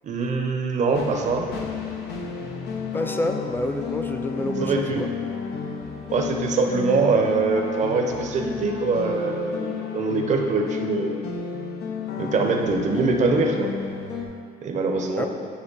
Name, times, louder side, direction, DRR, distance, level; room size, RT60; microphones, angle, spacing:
voice 1, 0.0-1.5 4.6-5.0 6.1-11.2 12.1-13.7 14.6-15.3, right 4 dB, 45° right, 3 dB, 0.7 m, -23 dB
sound 1, 0.9-14.3, left 6 dB, 75° left, 0.8 m, -32 dB
voice 2, 2.9-5.1 15.2-15.3, left 1 dB, 10° left, 6 dB, 0.4 m, -28 dB
9.6 x 3.2 x 3.9 m, 2.2 s
cardioid pair, 110°, 17 cm